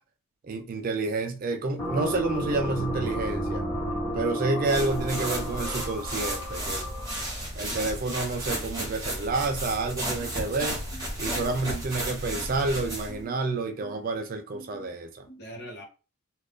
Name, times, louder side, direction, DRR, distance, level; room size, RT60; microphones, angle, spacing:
voice 1, 0.4-3.6 4.1-6.9 7.6-10.8 11.2-15.3, right 3 dB, 40° right, 0.3 m, -29 dB
sound 1, 1.8-7.4, equal, 10° left, 1.3 m, -32 dB
sound 2, 4.6-13.2, right 1 dB, 15° right, 1.1 m, -33 dB
voice 2, 10.2-10.6 10.9-11.8 13.1-13.5 13.8-14.0 14.5-15.0 15.3-15.8, right 1 dB, 45° left, 1.0 m, -45 dB
2.5 x 2.4 x 3.5 m
head